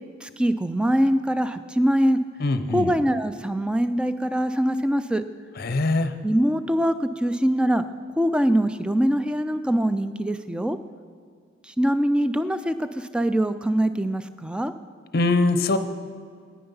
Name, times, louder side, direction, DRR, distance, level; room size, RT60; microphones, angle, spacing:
voice 1, 0.2-2.2 2.7-5.2 6.2-7.8 8.2-10.8 11.8-12.9 13.1-14.7, equal, 5° right, 11 dB, 0.3 m, -23 dB
voice 2, 2.4-2.9 5.6-6.1 15.1-15.8, left 2 dB, 50° left, 10 dB, 0.6 m, -22 dB
9.6 x 9.4 x 5.5 m, 2.1 s
head